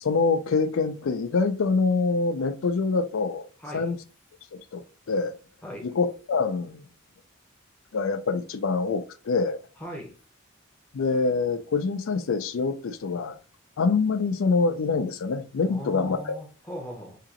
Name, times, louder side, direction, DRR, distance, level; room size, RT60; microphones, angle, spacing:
voice 1, 0.0-3.5 3.7-4.0 4.5-5.3 5.8-6.9 7.9-9.6 10.9-13.4 13.8-16.4, left 4 dB, 75° left, 0.4 m, -25 dB
voice 2, 3.6-3.9 5.6-5.8 9.8-10.1 15.6-17.2, equal, 5° left, 0.8 m, -39 dB
3.7 x 2.9 x 2.9 m
head